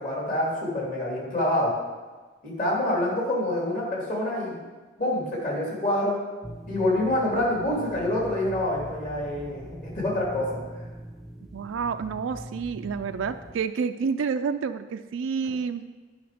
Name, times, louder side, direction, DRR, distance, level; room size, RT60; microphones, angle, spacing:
voice 1, 0.0-1.7 2.4-4.6 5.0-6.2 6.7-10.5, left 1 dB, 45° left, -4 dB, 2.8 m, -26 dB
sound 1, 6.4-13.5, right 1 dB, ahead, 0.4 m, -42 dB
voice 2, 11.5-15.9, right 5 dB, 80° right, 8 dB, 0.4 m, -29 dB
9.8 x 5.8 x 5.1 m, 1.3 s
head